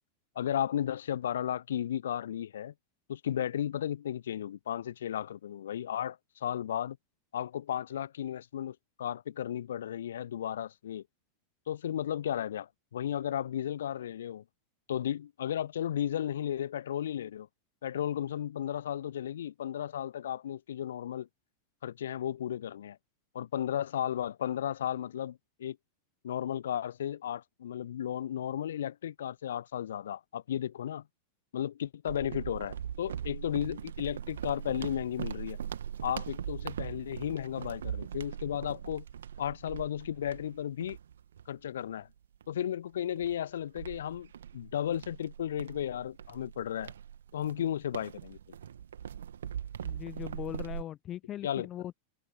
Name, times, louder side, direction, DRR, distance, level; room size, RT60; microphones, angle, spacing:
voice 1, 0.3-2.7 3.1-7.0 7.3-11.0 11.7-14.4 14.9-17.5 17.8-21.3 21.8-23.0 23.3-25.8 26.2-31.0 31.5-35.6 36.0-39.0 39.4-41.0 41.5-42.1 42.5-46.9 47.3-48.4 51.4-51.7, left 10 dB, 65° left, 0.8 m, -34 dB
sound 1, 32.1-41.9 42.4-42.6 43.2-50.8, right 9 dB, 65° right, 2.6 m, -41 dB
voice 2, 49.8-51.9, left 12 dB, 30° left, 0.4 m, -40 dB
figure-of-eight pair, 90°, 0 cm